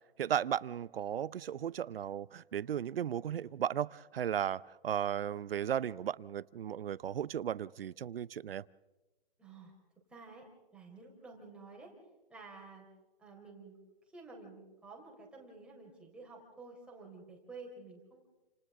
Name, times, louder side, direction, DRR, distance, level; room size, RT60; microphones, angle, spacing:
voice 1, 0.2-8.6, right 9 dB, 70° right, 0.7 m, -35 dB
voice 2, 9.4-9.7 10.1-11.9 12.3-12.9 13.2-13.8 14.1-18.3, right 3 dB, 5° right, 3.9 m, -51 dB
29.5 x 27.0 x 3.8 m
hypercardioid pair, 150°, 30 cm